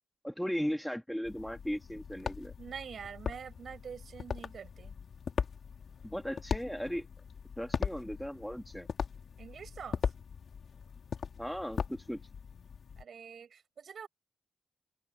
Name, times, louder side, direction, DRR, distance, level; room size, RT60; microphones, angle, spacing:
voice 1, 0.2-2.5 6.0-7.1 7.6-8.9 11.4-12.2, equal, ahead, 2.9 m, -37 dB
sound 1, 1.2-13.0, left 6 dB, 65° left, 2.3 m, -39 dB
voice 2, 2.6-5.0 9.4-10.1 13.0-14.1, right 7 dB, 70° right, 5.6 m, -45 dB
cardioid pair, 80°, 0 cm